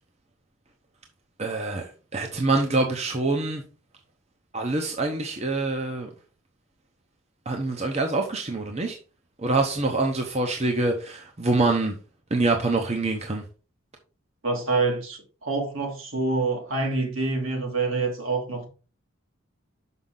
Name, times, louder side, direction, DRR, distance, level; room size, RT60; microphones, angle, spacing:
voice 1, 1.4-3.6 4.5-6.1 7.5-9.0 9.4-12.0 12.3-13.4, right 2 dB, 30° right, 0.8 m, -25 dB
voice 2, 14.4-18.7, right 3 dB, 75° right, 2.4 m, -26 dB
6.2 x 5.8 x 3.8 m
head